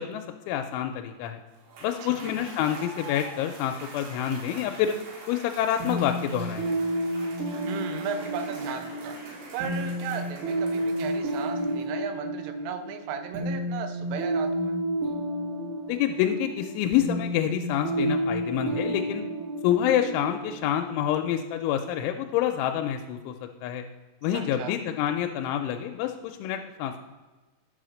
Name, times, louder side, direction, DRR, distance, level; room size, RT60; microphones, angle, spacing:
voice 1, 0.0-1.4 1.8-5.0 5.3-6.7 15.9-19.2 19.6-23.3 23.6-23.8 24.2-27.0, left 10 dB, 85° left, 4 dB, 3.0 m, -27 dB
Cheering / Applause / Crowd, 1.5-12.0, right 2 dB, 70° right, 4.1 m, -44 dB
voice 2, 2.0-2.5 7.7-14.8 24.3-24.7, right 7 dB, 90° right, 7 dB, 3.3 m, -36 dB
sound 1, 5.8-21.4, right 1 dB, 50° right, 3.3 m, -31 dB
10.0 x 4.9 x 6.4 m, 1.2 s
omnidirectional pair, 5.5 m